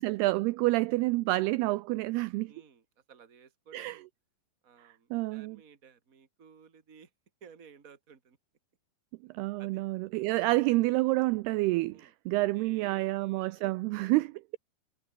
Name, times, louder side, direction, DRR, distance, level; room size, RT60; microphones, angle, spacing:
voice 1, 0.0-2.5 3.7-4.0 5.1-5.6 9.3-14.6, right 20 dB, 85° right, 2.3 m, -28 dB
voice 2, 2.5-4.1 4.6-7.1 7.4-8.4 9.6-9.8 11.9-12.1 12.5-13.7, right 6 dB, 25° right, 2.1 m, -56 dB
omnidirectional pair, 5.2 m